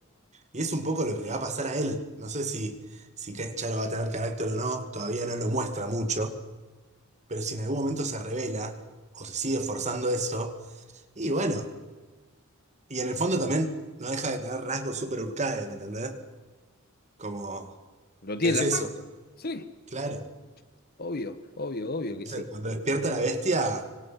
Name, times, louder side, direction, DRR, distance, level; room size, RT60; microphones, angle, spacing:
voice 1, 0.5-2.8 3.2-6.4 7.3-8.7 9.1-10.5 11.2-11.7 12.9-13.7 14.0-16.2 17.2-17.7 18.4-18.9 19.9-20.3 22.3-23.9, right 2 dB, 35° right, 2.4 m, -29 dB
voice 2, 18.2-18.8 19.4-19.7 21.0-22.4, left 2 dB, 45° left, 1.4 m, -30 dB
25.5 x 25.5 x 6.0 m
head